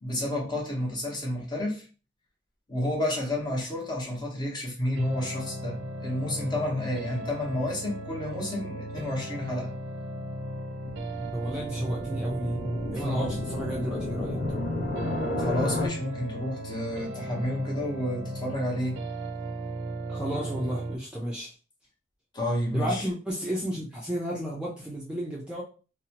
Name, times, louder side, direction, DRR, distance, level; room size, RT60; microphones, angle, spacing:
voice 1, 0.0-1.8 2.7-9.7 13.0-13.3 15.4-19.0 22.3-23.1, left 1 dB, 25° left, 0.8 m, -30 dB
sound 1, 5.0-21.0, right 1 dB, 90° right, 0.4 m, -36 dB
sound 2, 10.8-15.9, left 1 dB, 60° left, 0.7 m, -32 dB
voice 2, 11.3-12.6 12.9-14.4 20.1-21.5 22.7-25.6, equal, 5° right, 0.4 m, -33 dB
2.7 x 2.1 x 2.8 m
head